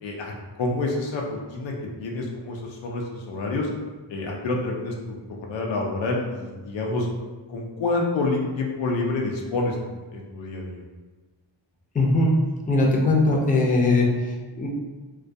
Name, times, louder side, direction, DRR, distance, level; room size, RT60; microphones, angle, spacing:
voice 1, 0.0-0.3 0.6-1.7 2.0-3.7 4.1-7.1 7.5-10.8, left 2 dB, 90° left, 0 dB, 0.5 m, -28 dB
voice 2, 11.9-12.4 12.7-14.7, left 2 dB, 20° left, -1 dB, 0.4 m, -20 dB
2.2 x 2.2 x 2.6 m, 1.3 s
wide cardioid pair, 75°, 44 cm